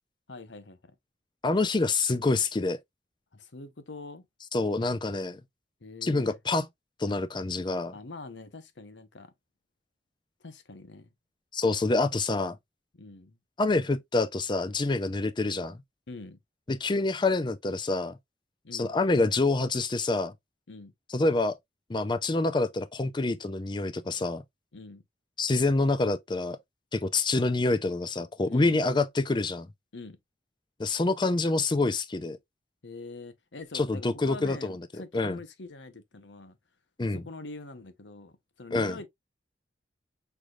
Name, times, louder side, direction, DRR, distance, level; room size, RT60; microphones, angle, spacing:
voice 1, 0.3-0.9 3.3-4.3 5.8-6.4 7.9-9.3 10.4-11.1 12.9-13.4 16.1-16.4 18.6-18.9 20.7-20.9 24.7-25.0 28.4-28.8 29.9-30.2 32.8-36.6 37.1-39.1, left 3 dB, 90° left, 0.9 m, -44 dB
voice 2, 1.4-2.8 4.5-5.4 6.0-6.7 7.0-7.9 11.5-12.6 13.6-15.8 16.7-18.2 18.7-20.3 21.1-21.6 21.9-24.4 25.4-26.6 26.9-29.7 30.8-32.4 33.7-35.4 37.0-37.2 38.7-39.0, left 3 dB, 25° left, 0.5 m, -27 dB
6.1 x 3.4 x 2.4 m
head